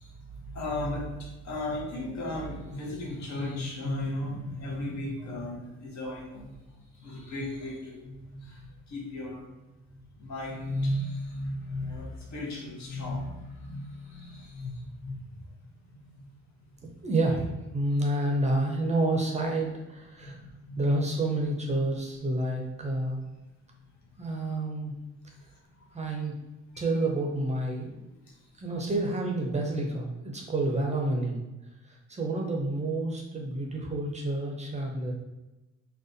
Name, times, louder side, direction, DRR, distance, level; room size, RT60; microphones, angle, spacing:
voice 1, 0.0-9.5 9.9-15.5 15.9-16.3 18.0-18.1 20.2-21.1 25.3-26.3 26.7-26.8 28.3-28.5, left 1 dB, 65° left, -1 dB, 0.8 m, -36 dB
voice 2, 17.0-17.5 17.7-20.4 20.8-23.2 24.2-24.9 25.9-26.3 26.8-28.0 28.6-31.4 31.9-35.1, right 2 dB, 25° right, 0 dB, 0.5 m, -29 dB
2.5 x 2.1 x 2.6 m, 1.0 s
cardioid pair, 90°, 30 cm